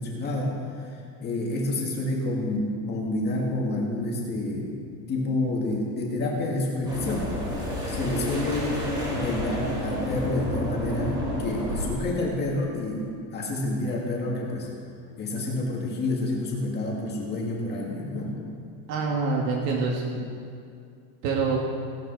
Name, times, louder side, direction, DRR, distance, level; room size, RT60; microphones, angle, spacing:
voice 1, 0.0-4.7 5.1-7.3 7.9-8.7 9.1-14.7 15.2-18.3, left 2 dB, 20° left, -2 dB, 2.0 m, -29 dB
sound 1, 6.8-11.9, equal, 10° right, 3.1 m, -30 dB
voice 2, 18.9-20.3 21.2-21.6, right 4 dB, 70° right, -1 dB, 2.0 m, -26 dB
17.0 x 12.0 x 4.0 m, 2.3 s
supercardioid pair, 175°, 50 cm